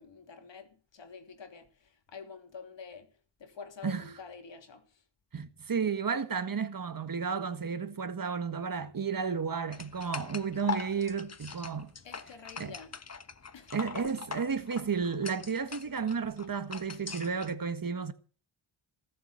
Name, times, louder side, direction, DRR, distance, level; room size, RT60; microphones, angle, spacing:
voice 1, 0.0-3.1 3.4-5.0 12.0-12.9 13.5-13.9, left 5 dB, 65° left, 3.1 m, -48 dB
voice 2, 5.3-11.9 12.6-12.7 13.7-18.1, right 6 dB, 45° right, 1.7 m, -32 dB
sound 1, 9.7-17.5, left 5 dB, 35° left, 1.2 m, -42 dB
17.5 x 7.8 x 7.9 m
cardioid pair, 70°, 47 cm